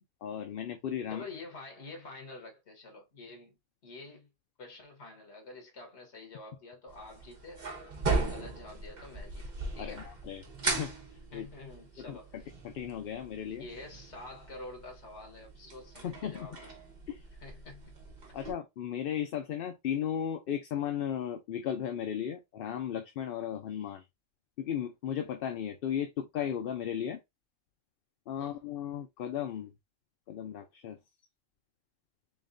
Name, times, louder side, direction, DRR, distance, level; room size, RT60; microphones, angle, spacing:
voice 1, 0.2-1.2 9.8-10.9 11.3-11.5 12.0-13.7 16.0-16.6 17.1-17.2 18.3-24.0 24.6-27.2 28.3-29.7 30.3-31.0, left 9 dB, 60° left, 0.7 m, -36 dB
voice 2, 1.1-3.6 3.8-4.3 4.6-7.6 8.1-10.1 11.3-12.5 13.6-16.6 17.4-17.9 18.3-18.4 28.4-28.6, left 3 dB, 80° left, 1.5 m, -48 dB
sound 1, 6.9-18.5, right 3 dB, 45° right, 1.1 m, -38 dB
3.7 x 3.6 x 2.5 m
omnidirectional pair, 1.1 m